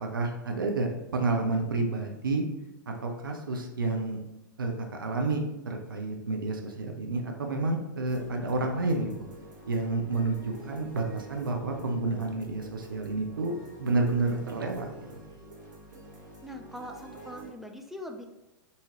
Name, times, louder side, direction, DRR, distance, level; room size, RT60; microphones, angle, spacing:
voice 1, 0.1-2.4 2.9-4.2 4.6-4.7 5.0-9.1 9.7-13.5 13.8-15.1, right 3 dB, 80° right, 3 dB, 0.5 m, -30 dB
sound 1, 8.0-17.5, right 2 dB, 65° right, 1.1 m, -47 dB
voice 2, 16.4-18.3, equal, ahead, 3 dB, 0.3 m, -42 dB
3.6 x 2.8 x 2.9 m, 0.95 s
figure-of-eight pair, 105°, 11 cm